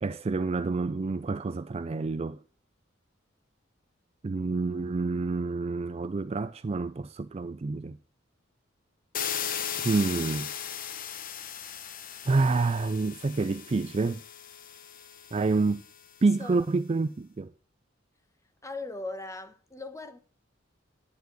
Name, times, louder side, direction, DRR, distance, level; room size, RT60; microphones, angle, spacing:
voice 1, 0.0-2.4 4.2-8.0 9.8-10.5 12.3-14.2 15.3-15.9 16.2-17.5, right 3 dB, 30° right, 0.4 m, -28 dB
sound 1, 9.1-16.0, left 8 dB, 45° left, 0.9 m, -37 dB
voice 2, 18.6-20.2, left 2 dB, 15° left, 1.0 m, -39 dB
10.5 x 5.0 x 6.2 m
head